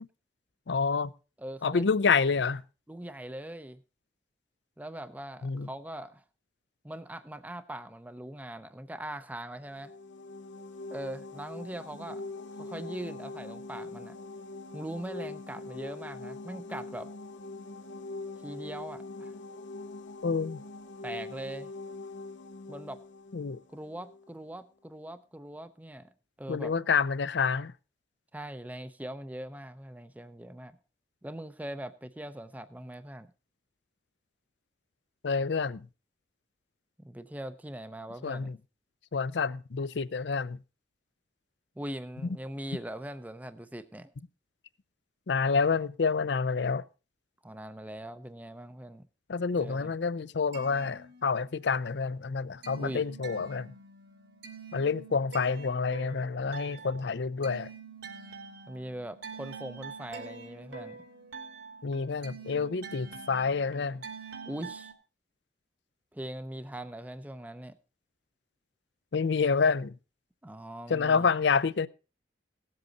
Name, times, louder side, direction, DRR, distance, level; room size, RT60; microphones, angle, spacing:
voice 1, 0.7-1.1 1.6-2.6 5.4-5.7 20.2-20.6 23.3-23.6 26.5-27.7 35.2-35.9 38.2-38.6 39.1-40.6 45.3-46.8 49.3-53.7 54.7-57.7 61.8-64.0 69.1-70.0 70.9-71.9, left 5 dB, 70° left, 0.5 m, -28 dB
voice 2, 1.4-1.9 2.9-3.8 4.8-6.2 6.8-9.9 10.9-12.2 12.6-14.2 14.7-17.1 18.4-19.3 21.0-21.7 22.7-23.0 23.7-26.1 26.4-26.7 28.3-30.8 31.2-33.3 37.1-38.6 41.8-44.1 47.4-49.0 49.6-49.9 52.8-53.0 58.7-61.0 64.4-64.9 66.1-67.8 70.4-71.3, right 1 dB, 10° right, 0.6 m, -41 dB
sound 1, 9.6-24.3, left 2 dB, 85° left, 0.9 m, -43 dB
sound 2, 50.3-51.7 52.1-64.9, right 4 dB, 75° right, 2.1 m, -46 dB
18.5 x 7.9 x 3.9 m
head